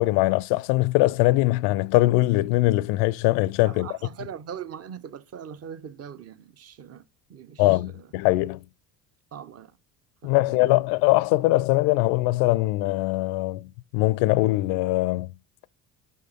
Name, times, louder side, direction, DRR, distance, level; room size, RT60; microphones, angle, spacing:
voice 1, 0.0-3.9 7.6-8.6 10.2-15.3, left 19 dB, 60° left, 0.5 m, -22 dB
voice 2, 3.6-7.0 7.3-8.1 9.3-9.7 10.2-10.7, right 8 dB, 30° right, 0.7 m, -41 dB
5.7 x 5.1 x 3.9 m
hypercardioid pair, 65°, 49 cm